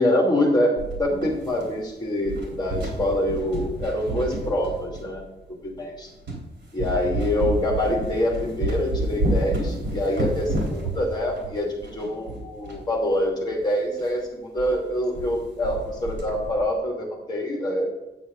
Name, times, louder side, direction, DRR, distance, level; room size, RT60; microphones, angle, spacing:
voice 1, 0.0-5.2 5.6-6.1 6.7-17.8, left 1 dB, 20° left, -1 dB, 2.7 m, -25 dB
sound 1, 0.8-1.9 2.2-5.2 5.8-5.9 6.3-6.5 6.8-12.8 13.1-13.2 13.5-13.6 14.0-14.2 14.6-14.7 15.0-15.3 15.6-16.6, right 1 dB, 75° right, 4.0 m, -29 dB
9.4 x 8.7 x 3.9 m, 1.0 s
wide cardioid pair, 170°, 19 cm